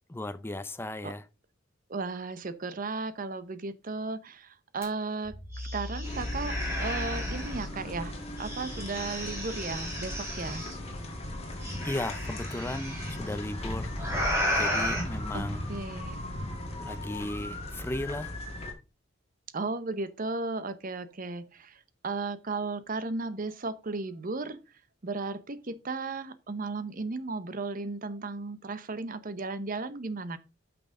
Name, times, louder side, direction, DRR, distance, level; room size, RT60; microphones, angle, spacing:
voice 1, 0.1-1.2 11.8-13.9 14.6-15.6 16.8-18.3, left 1 dB, 10° left, 0.5 m, -36 dB
voice 2, 1.9-10.6 15.3-16.2 19.5-24.6 25.0-30.4, right 3 dB, 45° right, 0.7 m, -35 dB
sound 1, 4.8-4.9 5.3-7.6 8.4-10.8 11.6-13.2 14.0-15.0, equal, 15° right, 3.6 m, -33 dB
sound 2, 6.0-18.7, left 1 dB, 30° left, 2.0 m, -37 dB
8.7 x 6.0 x 3.7 m
head